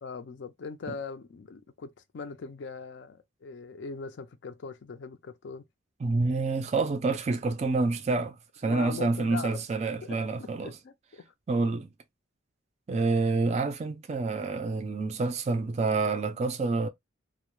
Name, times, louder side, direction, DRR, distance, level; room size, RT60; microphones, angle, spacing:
voice 1, 0.0-5.7 8.6-9.6 10.0-11.3, left 4 dB, 65° left, 0.4 m, -41 dB
voice 2, 6.0-8.4 8.6-10.7 11.5-11.9 12.9-16.9, right 3 dB, 35° right, 0.3 m, -28 dB
2.2 x 2.0 x 3.0 m
head